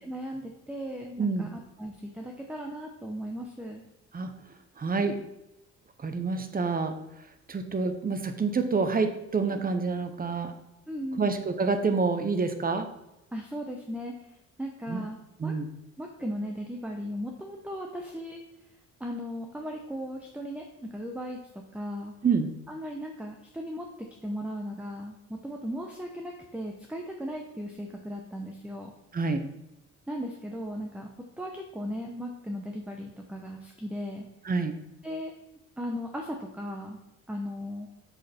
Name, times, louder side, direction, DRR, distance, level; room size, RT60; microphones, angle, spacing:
voice 1, 0.0-3.8 10.9-11.3 13.3-14.1 14.6-15.5 16.0-18.4 19.0-22.1 22.7-23.9 24.2-28.9 30.1-31.1 31.4-34.2 35.0-35.3 35.8-37.0 37.3-37.9, equal, 5° right, 1 dB, 0.9 m, -37 dB
voice 2, 4.8-5.2 6.0-6.9 7.5-10.5 11.2-12.9 14.9-15.0 15.4-15.7 22.2-22.5 29.1-29.4 34.4-34.7, right 4 dB, 30° right, 8 dB, 0.9 m, -27 dB
6.3 x 5.4 x 4.4 m, 0.92 s
cardioid pair, 90°, 30 cm